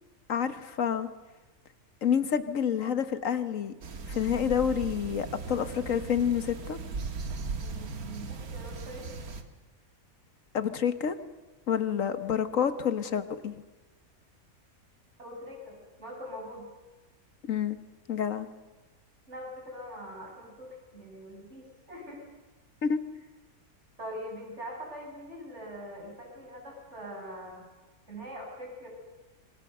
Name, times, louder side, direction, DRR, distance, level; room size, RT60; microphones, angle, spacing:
voice 1, 0.3-1.1 2.0-3.7 4.1-6.8 10.5-11.1 11.7-13.6 17.5-17.8 18.1-18.5 22.8-23.0, left 8 dB, 60° left, 11 dB, 1.5 m, -28 dB
sound 1, 3.8-9.4, right 4 dB, 70° right, 2.0 m, -38 dB
voice 2, 7.6-9.1 15.2-16.7 19.3-22.2 24.0-27.6 28.1-28.9, equal, 45° right, 0 dB, 6.5 m, -43 dB
26.5 x 23.5 x 6.7 m, 1.2 s
omnidirectional pair, 1.6 m